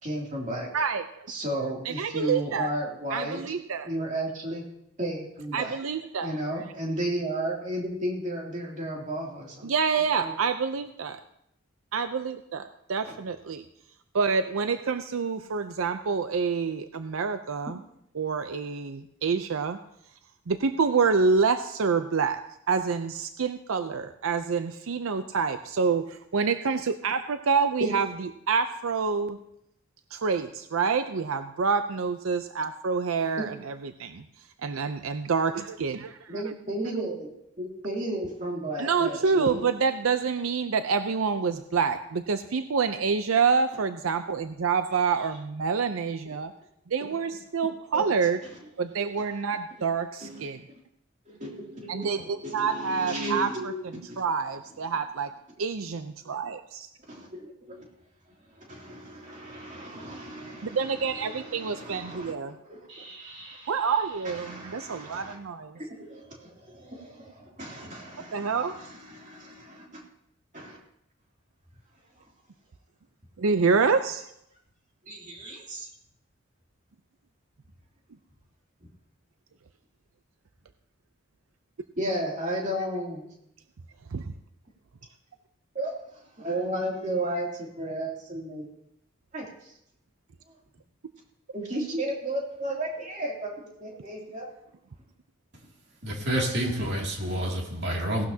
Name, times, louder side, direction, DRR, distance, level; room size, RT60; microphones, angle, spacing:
voice 1, 0.0-0.7 1.3-3.4 3.8-4.6 5.0-5.8 6.2-9.7 10.2-10.3 13.1-13.2 27.8-28.0 33.4-33.5 36.3-37.3 37.6-39.6 47.9-48.1 50.2-50.5 51.3-54.2 57.1-57.8 58.5-63.9 64.2-65.4 65.7-70.0 70.5-70.8 75.0-75.9 78.8-78.9 82.0-83.2 85.7-85.9 86.4-88.7 89.3-89.7 90.5-90.6 91.5-94.5, right 1 dB, 35° right, 2.8 m, -34 dB
voice 2, 0.7-1.3 1.8-2.7 3.1-3.9 5.5-6.4 9.6-11.2 11.9-13.6 14.1-17.8 18.2-19.8 20.5-22.4 22.7-28.1 28.5-29.4 30.1-34.2 34.6-36.5 38.8-46.5 46.9-48.4 48.8-50.6 51.9-53.5 54.2-55.3 55.6-56.9 60.6-62.6 63.7-65.8 68.3-68.8 73.4-74.3 84.1-84.2, right 5 dB, 85° right, 0.6 m, -27 dB
voice 3, 96.0-98.3, equal, 55° right, 2.5 m, -28 dB
17.5 x 12.0 x 2.8 m
head